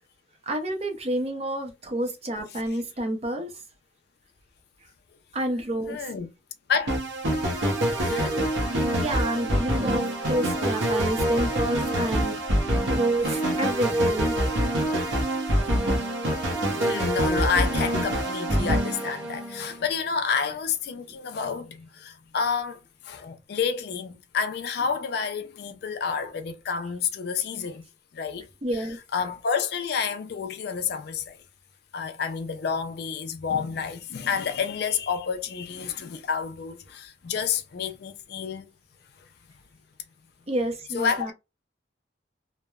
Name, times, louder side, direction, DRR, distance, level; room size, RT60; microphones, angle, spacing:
voice 1, 0.5-3.5 5.3-6.0 9.0-12.4 12.9-14.6 28.6-29.0 40.5-41.3, right 1 dB, 30° right, 0.5 m, -29 dB
voice 2, 5.9-6.3 6.7-7.0 7.9-8.4 16.7-27.8 28.1-28.9 29.1-31.4 31.9-38.7 39.2-39.3 40.9-41.3, left 6 dB, 55° left, 0.4 m, -29 dB
sound 1, 6.9-19.8, right 1 dB, 80° right, 0.7 m, -25 dB
3.0 x 2.0 x 2.3 m
head